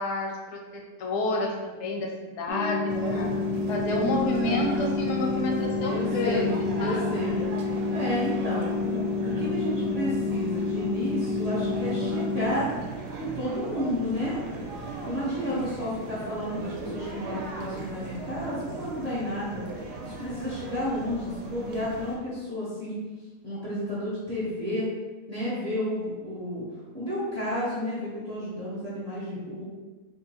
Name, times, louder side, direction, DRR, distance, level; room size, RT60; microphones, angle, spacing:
voice 1, 0.0-2.1 2.4-3.3 3.7-7.0 15.4-16.1, left 2 dB, 90° left, 0 dB, 1.2 m, -30 dB
sound 1, 2.5-12.5, left 4 dB, 70° left, 0.8 m, -29 dB
sound 2, 2.9-22.2, right 3 dB, 80° right, 1.1 m, -37 dB
voice 2, 5.8-7.4 7.9-12.7 13.2-14.4 15.0-19.6 20.0-22.9 23.4-24.9 25.3-26.6 26.9-29.6, equal, 35° right, -8 dB, 0.7 m, -31 dB
3.7 x 2.5 x 2.8 m, 1.2 s
omnidirectional pair, 1.7 m